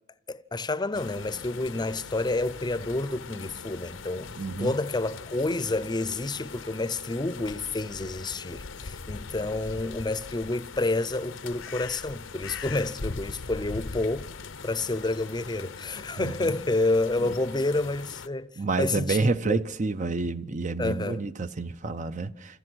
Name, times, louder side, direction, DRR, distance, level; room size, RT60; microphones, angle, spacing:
voice 1, 0.3-14.3 14.6-18.5 18.8-19.7 20.8-21.3, left 2 dB, 20° left, 0.7 m, -29 dB
sound 1, 0.9-18.3, left 4 dB, 75° left, 0.9 m, -41 dB
voice 2, 4.4-4.7 16.2-16.3 17.2-17.3 18.6-22.6, right 3 dB, 40° right, 0.7 m, -29 dB
29.0 x 14.5 x 6.3 m
head